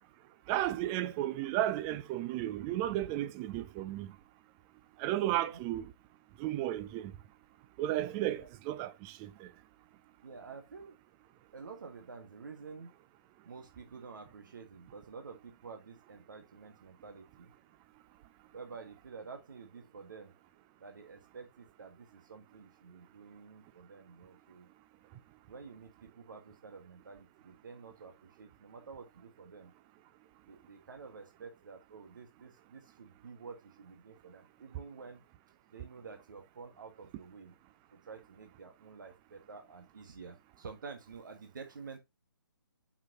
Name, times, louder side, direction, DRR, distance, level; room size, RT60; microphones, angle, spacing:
voice 1, 0.5-4.1 5.0-5.9 6.4-7.1 7.8-9.5, right 13 dB, 15° right, 0.4 m, -33 dB
voice 2, 10.2-11.0 11.5-12.9 13.4-17.5 18.5-20.3 20.8-24.7 25.5-29.7 30.5-35.2 35.7-37.5 37.9-42.0, right 5 dB, 55° right, 1.6 m, -50 dB
7.4 x 5.9 x 2.9 m
figure-of-eight pair, 140°, 12 cm